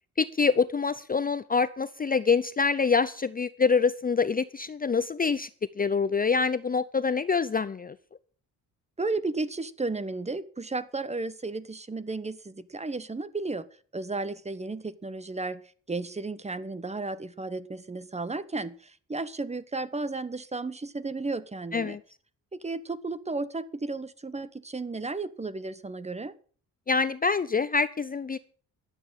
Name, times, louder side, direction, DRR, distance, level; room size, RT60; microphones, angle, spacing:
voice 1, 0.2-5.5 5.8-7.9 21.7-22.0 26.9-28.4, left 5 dB, 25° left, 15 dB, 0.5 m, -25 dB
voice 2, 9.0-13.7 13.9-15.6 15.9-22.0 22.5-26.4, right 3 dB, 20° right, 15 dB, 1.0 m, -33 dB
12.0 x 8.8 x 7.4 m, 0.44 s
cardioid pair, 105°, 34 cm